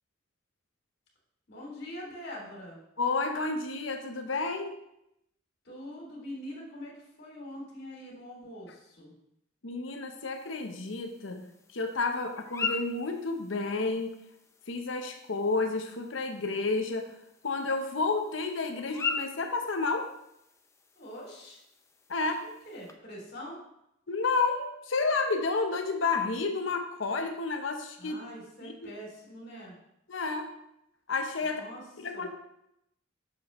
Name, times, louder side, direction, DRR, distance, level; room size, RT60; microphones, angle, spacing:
voice 1, 1.5-2.8 5.6-9.1 21.0-21.6 22.2-22.3 22.7-23.6 28.0-29.7 31.4-31.8 32.1-32.3, equal, 55° left, -3 dB, 2.7 m, -44 dB
voice 2, 3.0-4.8 9.6-11.4 11.7-14.1 14.7-17.1 17.4-20.1 22.1-22.3 24.1-28.2 28.6-28.9 30.1-30.5 31.1-31.6 32.0-32.3, left 3 dB, 80° left, 6 dB, 0.9 m, -30 dB
sound 1, 10.3-22.9, left 5 dB, 15° left, 0.5 m, -42 dB
7.3 x 6.9 x 3.1 m, 0.81 s
head